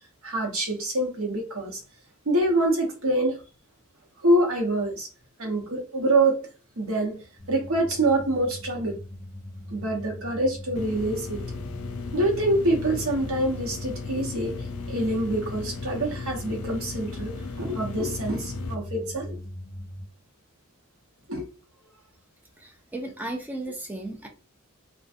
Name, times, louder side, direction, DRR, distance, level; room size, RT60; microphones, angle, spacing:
voice 1, 0.2-1.8 2.3-3.4 4.2-5.1 5.4-6.4 6.8-7.2 7.5-9.0 9.7-11.4 12.1-14.5 14.9-19.4 21.3-21.5, right 1 dB, 75° right, 0.9 m, -25 dB
sound 1, 7.4-20.0, left 1 dB, 10° left, 0.9 m, -40 dB
sound 2, 10.8-18.8, left 4 dB, 75° left, 0.4 m, -36 dB
voice 2, 22.6-24.3, right 2 dB, 10° right, 0.3 m, -35 dB
2.5 x 2.2 x 2.5 m
head